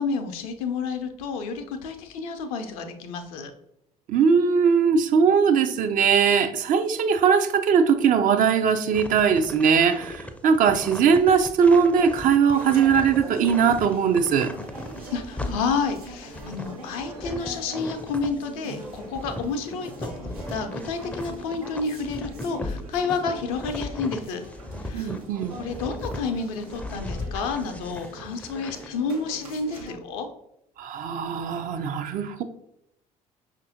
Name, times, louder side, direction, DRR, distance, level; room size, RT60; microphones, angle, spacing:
voice 1, 0.0-3.5 15.1-20.1 20.5-24.4 24.8-25.2 25.6-30.3, left 4 dB, 70° left, 0.5 m, -30 dB
voice 2, 4.1-14.5 24.9-25.6 30.8-32.4, right 6 dB, 45° right, 0.4 m, -20 dB
sound 1, 8.9-18.5 18.8-26.2 26.6-28.9, left 1 dB, 5° left, 0.5 m, -37 dB
sound 2, 12.5-29.9, right 2 dB, 85° right, 0.6 m, -42 dB
5.3 x 2.5 x 2.7 m
figure-of-eight pair, 50°, 19 cm